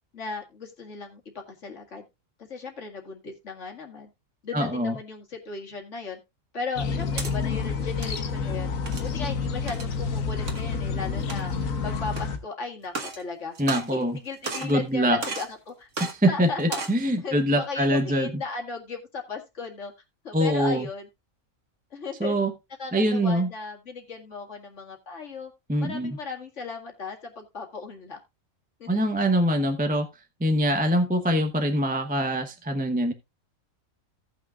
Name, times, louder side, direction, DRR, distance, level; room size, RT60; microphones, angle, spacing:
voice 1, 0.1-2.1 2.4-4.1 4.4-6.2 6.5-11.5 11.8-13.6 13.9-15.9 16.3-16.8 17.2-19.9 20.2-21.1 21.9-22.3 22.8-25.5 25.8-28.2 28.8-29.1, left 4 dB, 60° left, 2 dB, 2.3 m, -36 dB
voice 2, 4.5-4.9 13.6-14.2 14.6-15.2 16.0-18.3 20.3-20.9 22.2-22.5 22.9-23.5 25.7-26.2 28.9-30.1 30.4-33.1, equal, 10° right, 5 dB, 0.8 m, -24 dB
sound 1, 6.8-12.4, left 5 dB, 75° left, 1.5 m, -29 dB
sound 2, 6.8-7.3 7.9-8.2 8.9-9.1 9.7-9.9 10.5-10.6 11.2-11.6 12.1-12.2 12.8-13.2 13.5-14.2 14.4-14.8 15.2-15.5 15.9-16.1 16.6-17.0, right 4 dB, 65° right, 1.9 m, -34 dB
17.0 x 6.1 x 2.4 m, 0.24 s
omnidirectional pair, 1.4 m